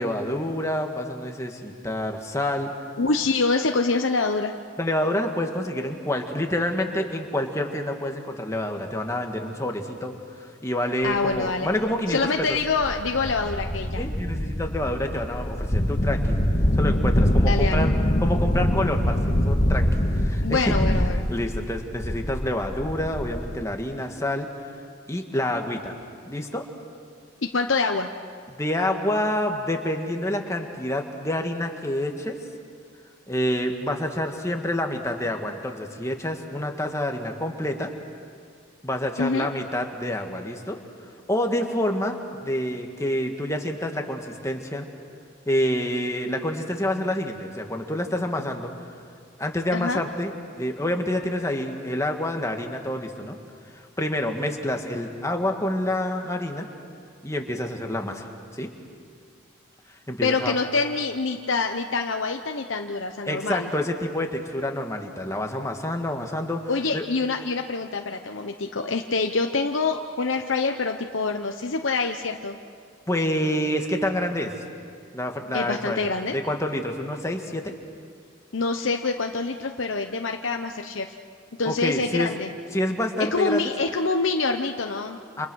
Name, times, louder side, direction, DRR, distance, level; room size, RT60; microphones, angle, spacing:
voice 1, 0.0-2.7 4.8-10.1 10.4-12.6 14.0-16.4 16.8-17.9 18.2-20.7 21.3-24.5 25.1-26.0 26.3-26.6 28.6-32.4 33.3-37.9 38.8-40.8 41.3-44.9 45.5-48.7 49.4-53.4 53.7-56.7 57.2-58.7 60.1-60.6 63.3-66.6 66.9-67.0 73.1-74.5 75.1-77.7 81.7-82.3 82.7-83.7 85.4-85.5, left 1 dB, 15° left, 3 dB, 1.9 m, -28 dB
voice 2, 3.0-4.5 11.0-11.7 12.1-14.0 17.5-17.9 20.4-21.2 27.5-28.1 39.2-39.5 49.7-50.0 60.2-63.7 66.7-72.6 75.5-76.4 78.5-81.1 81.6-82.5 83.3-85.2, left 4 dB, 90° left, 4 dB, 1.0 m, -25 dB
sound 1, 11.3-11.4 12.1-12.2 12.6-23.6, equal, 40° left, 1.9 m, -24 dB
29.5 x 28.0 x 6.4 m, 2.2 s
head